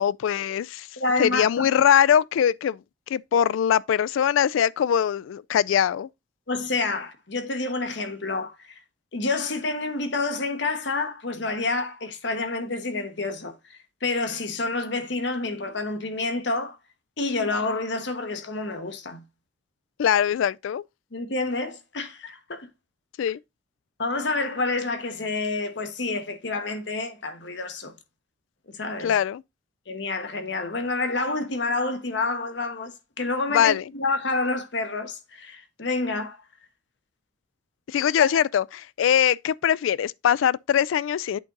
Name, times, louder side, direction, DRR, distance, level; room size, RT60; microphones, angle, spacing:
voice 1, 0.0-0.9 1.2-2.8 3.1-6.1 20.0-20.8 23.2-23.4 29.0-29.4 33.5-33.8 37.9-41.4, left 9 dB, 85° left, 0.3 m, -22 dB
voice 2, 1.0-1.7 6.5-8.8 9.1-16.8 17.2-19.2 21.1-22.7 24.0-27.9 28.7-29.1 29.9-36.4 38.3-38.4, left 3 dB, 65° left, 1.1 m, -28 dB
8.4 x 3.9 x 3.8 m
head